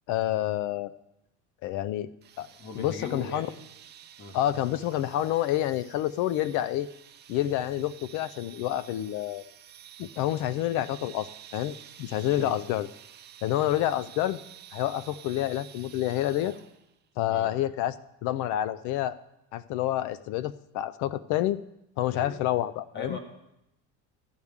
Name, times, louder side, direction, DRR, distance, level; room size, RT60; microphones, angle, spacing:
voice 1, 0.1-0.9 1.6-2.1 2.4-2.5 2.8-3.5 4.3-6.9 7.3-9.4 10.0-12.9 13.4-14.4 14.7-16.5 17.2-17.9 18.2-19.2 19.5-21.6 22.0-23.2, left 13 dB, 65° left, 16 dB, 0.5 m, -28 dB
sound 1, 2.2-17.0, right 10 dB, 30° right, 0.6 m, -50 dB
voice 2, 2.6-3.6 4.2-4.4 12.4-12.6 17.3-17.5 22.1-22.4 22.9-23.2, left 2 dB, 35° left, 5 dB, 1.4 m, -39 dB
13.0 x 9.6 x 3.6 m, 0.85 s
cardioid pair, 140°, 33 cm